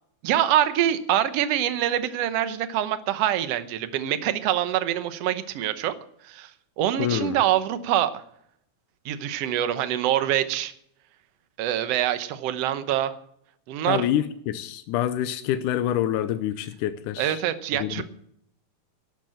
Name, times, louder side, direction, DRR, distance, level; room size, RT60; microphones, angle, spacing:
voice 1, 0.2-5.9 6.2-6.5 6.8-8.2 9.1-10.7 11.6-13.1 13.7-14.1 17.2-18.0, right 11 dB, 65° right, 11 dB, 1.8 m, -25 dB
voice 2, 7.0-7.4 13.9-17.4 17.7-18.0, left 11 dB, 90° left, 10 dB, 2.3 m, -26 dB
11.5 x 9.2 x 9.0 m, 0.70 s
omnidirectional pair, 3.6 m